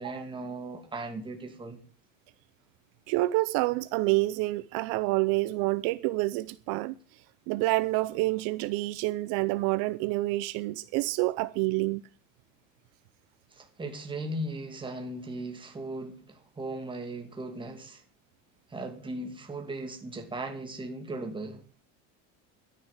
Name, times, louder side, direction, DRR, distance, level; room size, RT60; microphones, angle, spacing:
voice 1, 0.0-1.8 13.5-18.0 18.7-21.6, right 2 dB, 15° right, 2.6 m, -37 dB
voice 2, 3.1-12.0, right 20 dB, 60° right, 0.7 m, -28 dB
12.5 x 10.0 x 7.4 m
cardioid pair, 155°, 38 cm